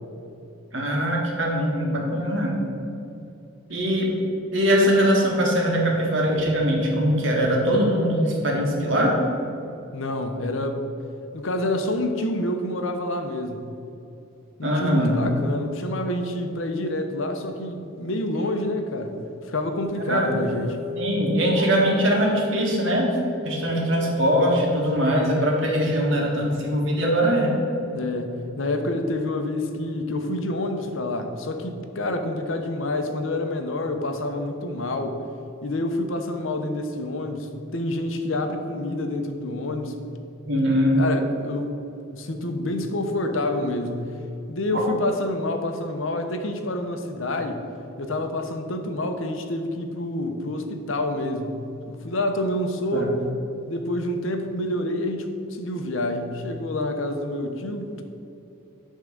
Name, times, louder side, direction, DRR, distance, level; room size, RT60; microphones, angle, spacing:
voice 1, 0.7-2.5 3.7-4.1 4.5-9.1 14.6-15.2 20.0-20.4 20.9-23.1 23.4-27.6 40.5-41.0 44.7-44.8 52.9-53.1, equal, 65° right, -1 dB, 1.8 m, -22 dB
voice 2, 9.9-10.8 11.3-13.6 14.6-19.1 19.5-20.8 25.2-25.3 27.9-35.2 35.6-39.9 41.0-41.7 42.1-44.0 44.5-47.6 48.0-51.6 51.9-53.2 53.7-58.0, left 1 dB, 70° left, 6 dB, 0.8 m, -28 dB
sound 1, 19.8-28.8, left 5 dB, 30° left, 1.0 m, -37 dB
10.5 x 3.7 x 6.6 m, 2.8 s
head